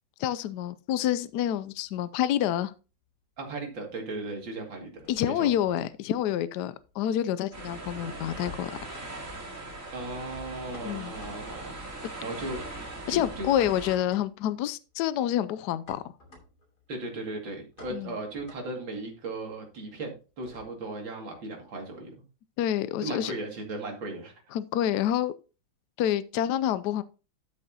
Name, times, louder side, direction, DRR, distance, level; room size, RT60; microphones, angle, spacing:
voice 1, 0.2-2.7 5.1-8.8 10.8-11.2 13.1-16.0 17.9-18.1 22.6-23.3 24.5-25.3 26.0-27.0, left 11 dB, 75° left, 0.9 m, -28 dB
sound 1, 1.3-2.8 3.0-3.7 4.0-21.0, left 2 dB, 50° left, 3.4 m, -53 dB
voice 2, 3.4-5.5 9.9-12.6 13.1-13.7 16.9-22.1 23.0-24.3, right 2 dB, 70° right, 3.0 m, -37 dB
sound 2, 7.5-14.0, right 2 dB, 40° right, 3.2 m, -40 dB
12.5 x 6.4 x 2.8 m
omnidirectional pair, 2.2 m